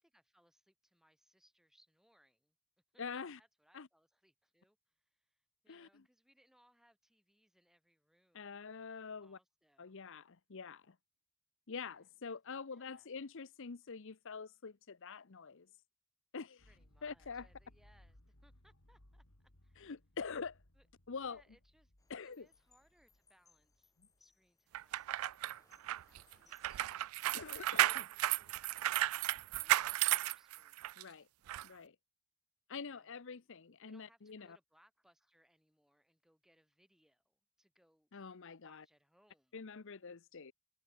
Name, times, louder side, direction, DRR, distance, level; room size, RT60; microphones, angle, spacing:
voice 1, 0.0-2.6 2.9-8.7 9.2-10.1 11.7-12.1 12.5-13.1 16.6-19.9 20.7-20.9 21.2-21.9 22.2-27.1 27.4-31.2 32.7-33.5 33.8-38.1 38.5-39.6 40.3-40.4, equal, ahead, 6.8 m, -73 dB
voice 2, 3.0-3.4 3.7-3.9 5.7-6.0 8.3-9.4 9.8-11.0 11.7-15.7 16.3-16.7 17.0-17.5 19.8-20.6 21.1-21.4 22.1-22.5 27.3-28.0 31.0-31.3 31.6-32.0 32.7-34.6 38.1-38.8 39.5-40.5, left 5 dB, 60° left, 0.7 m, -46 dB
sound 1, 16.6-24.8, left 1 dB, 80° left, 3.4 m, -66 dB
sound 2, 22.0-27.4, left 4 dB, 15° left, 3.7 m, -72 dB
sound 3, 24.7-31.0 31.5-31.6, right 14 dB, 70° right, 0.3 m, -34 dB
head